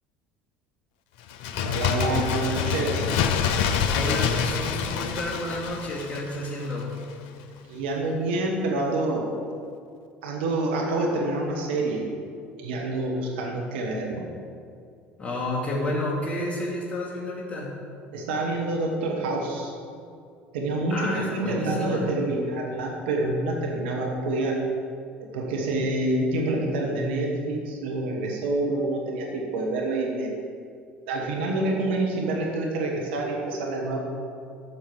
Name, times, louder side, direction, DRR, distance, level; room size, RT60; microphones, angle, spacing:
Bird, 1.3-6.8 7.1-7.2, left 7 dB, 65° left, 0.7 m, -26 dB
voice 1, 1.6-3.2 7.7-9.3 10.2-12.1 12.6-14.2 18.1-19.7 20.5-24.6 25.2-30.3 31.1-34.0, right 2 dB, 70° right, 0 dB, 1.5 m, -27 dB
voice 2, 3.9-6.9 15.2-17.7 20.9-22.1, left 1 dB, 20° left, -5 dB, 2.4 m, -30 dB
8.9 x 7.0 x 6.2 m, 2.4 s
figure-of-eight pair, 65°, 6 cm